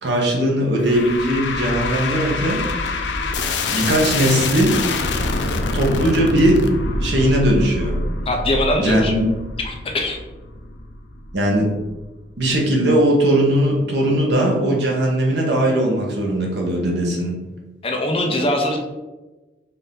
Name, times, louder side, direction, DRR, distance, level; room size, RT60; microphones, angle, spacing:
voice 1, 0.0-2.6 3.7-4.8 5.7-6.6 6.9-8.0 8.8-9.3 11.3-11.7 12.4-17.4, right 1 dB, 75° right, -1 dB, 1.0 m, -19 dB
sound 1, 0.8-12.1, left 3 dB, 85° left, 0.5 m, -25 dB
voice 2, 8.3-9.1 9.6-10.2 17.8-18.8, left 1 dB, 30° left, 2 dB, 0.6 m, -22 dB
4.2 x 2.6 x 3.6 m, 1.1 s
head